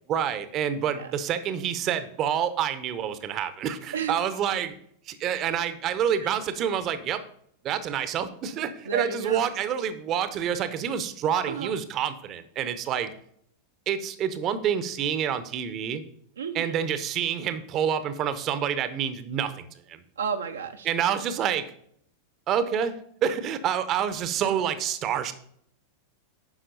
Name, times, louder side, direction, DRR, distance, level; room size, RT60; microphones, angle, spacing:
voice 1, 0.1-4.8 5.1-7.2 7.6-13.1 13.9-16.0 16.5-20.0 20.8-21.6 22.5-23.0 23.2-25.3, right 8 dB, 35° right, 12 dB, 0.8 m, -28 dB
voice 2, 8.9-9.4 11.5-11.7 16.4-16.6 20.2-20.9, right 6 dB, 70° right, 5 dB, 0.7 m, -31 dB
9.9 x 5.8 x 4.0 m, 0.66 s
figure-of-eight pair, 90°, 0 cm